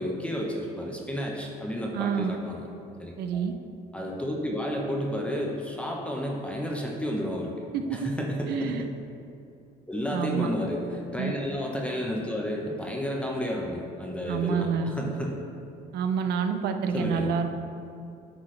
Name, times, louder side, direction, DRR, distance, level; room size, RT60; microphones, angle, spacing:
voice 1, 0.0-2.6 3.0-3.4 3.9-7.5 7.9-8.8 9.9-15.4 16.9-17.3, equal, 5° left, -2 dB, 1.0 m, -31 dB
voice 2, 1.9-2.4 3.2-3.5 7.7-8.1 8.5-8.8 10.1-10.5 11.2-11.3 14.3-14.9 15.9-17.5, right 6 dB, 75° right, 7 dB, 0.6 m, -28 dB
9.7 x 6.1 x 3.3 m, 2.5 s
cardioid pair, 110°, 17 cm